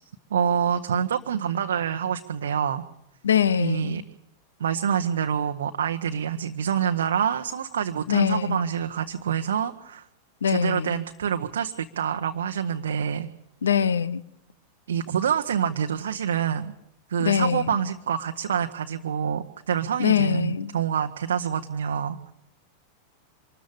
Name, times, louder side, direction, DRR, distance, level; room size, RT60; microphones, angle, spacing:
voice 1, 0.3-2.8 3.6-4.0 4.6-10.1 10.5-13.3 14.9-16.7 17.1-22.3, right 8 dB, 65° right, 0.8 m, -26 dB
voice 2, 3.2-4.0 8.1-8.6 10.4-11.0 13.6-14.2 17.2-17.8 20.0-20.7, left 8 dB, 70° left, 0.8 m, -23 dB
25.0 x 13.5 x 8.4 m
figure-of-eight pair, 90°, 0 cm